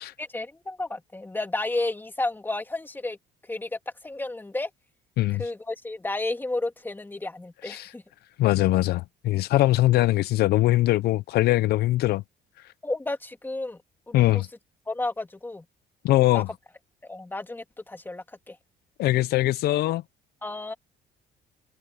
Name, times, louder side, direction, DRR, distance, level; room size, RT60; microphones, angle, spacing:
voice 1, 0.2-3.2 3.5-4.7 5.3-8.0 12.8-13.8 14.1-14.2 14.9-15.6 16.3-16.4 17.0-18.6 20.4-20.7, left 2 dB, 10° left, 2.7 m, -32 dB
voice 2, 8.4-12.2 14.1-14.5 16.0-16.5 19.0-20.0, left 16 dB, 70° left, 0.5 m, -22 dB
cardioid pair, 110°, 17 cm